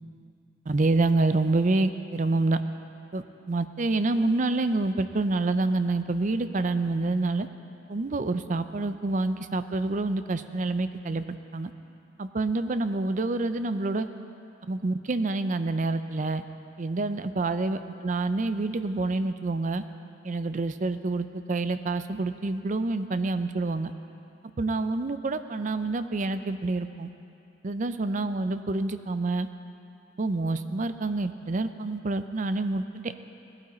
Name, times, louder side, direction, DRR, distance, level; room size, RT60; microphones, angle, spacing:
voice 1, 0.7-2.6 3.1-7.5 7.9-11.2 11.5-11.7 12.2-14.1 14.7-16.4 16.8-19.8 20.2-23.9 24.6-27.1 27.6-29.5 30.2-33.1, right 2 dB, 40° right, 10 dB, 0.5 m, -27 dB
18.5 x 12.0 x 4.3 m, 2.7 s
head